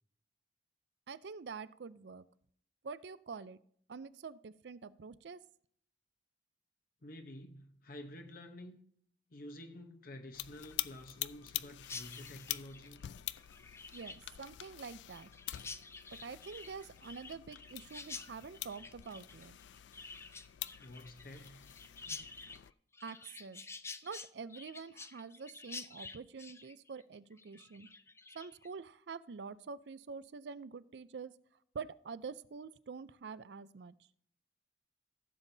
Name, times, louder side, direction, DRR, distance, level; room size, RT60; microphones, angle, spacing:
voice 1, 1.1-2.3 2.8-3.6 3.9-5.4 13.9-15.3 16.2-19.6 23.0-23.6 24.0-27.9 28.3-31.3 31.7-33.9, right 5 dB, 70° right, 0.5 m, -46 dB
voice 2, 7.0-8.8 9.3-13.0 20.8-21.6, left 1 dB, 55° left, 0.9 m, -50 dB
sound 1, 10.3-22.7, left 14 dB, 85° left, 0.4 m, -46 dB
Chirp tweet, 11.8-28.7, left 4 dB, 15° left, 0.4 m, -49 dB
15.5 x 7.2 x 2.7 m
head